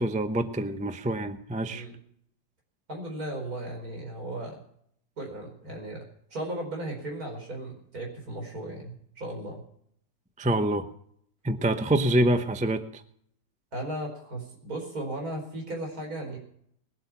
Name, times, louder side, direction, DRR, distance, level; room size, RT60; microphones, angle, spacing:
voice 1, 0.0-1.8 10.4-10.9 11.4-13.0, right 1 dB, 10° right, 9 dB, 0.4 m, -26 dB
voice 2, 2.9-4.6 5.2-6.0 6.3-9.6 13.7-16.4, right 1 dB, 55° right, 1 dB, 5.0 m, -36 dB
20.5 x 8.1 x 5.9 m, 0.67 s
omnidirectional pair, 1.8 m